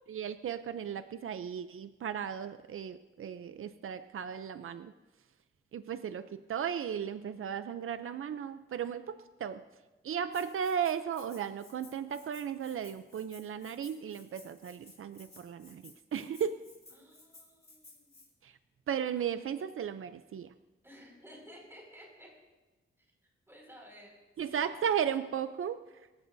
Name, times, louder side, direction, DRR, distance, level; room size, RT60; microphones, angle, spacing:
voice 1, 0.1-4.9 5.7-9.6 10.0-16.6 18.4-18.6 18.9-20.5 24.4-26.1, right 8 dB, 85° right, 11 dB, 0.6 m, -35 dB
Rattle (instrument), 10.3-18.3, left 2 dB, 30° left, 3.4 m, -57 dB
voice 2, 16.9-18.2 20.8-22.3 23.0-24.2 24.4-24.7, equal, 10° right, -2 dB, 5.4 m, -54 dB
26.0 x 14.0 x 2.7 m, 1.2 s
wide cardioid pair, 150°, 21 cm